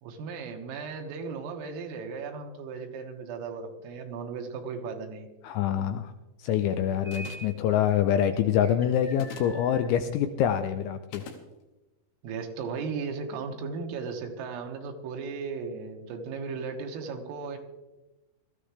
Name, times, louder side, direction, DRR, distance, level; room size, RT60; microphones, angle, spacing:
voice 1, 0.0-5.3 12.2-17.6, right 5 dB, 85° right, 3 dB, 4.1 m, -36 dB
voice 2, 5.4-6.1 6.4-11.3, left 9 dB, 85° left, 8 dB, 2.7 m, -25 dB
sound 1, 7.0-7.5 7.9-9.9, right 1 dB, 65° right, 0.5 m, -45 dB
sound 2, 7.1-7.6 9.1-9.6 11.1-11.4, left 5 dB, 65° left, 3.4 m, -44 dB
20.0 x 14.0 x 3.3 m, 1.1 s
omnidirectional pair, 5.9 m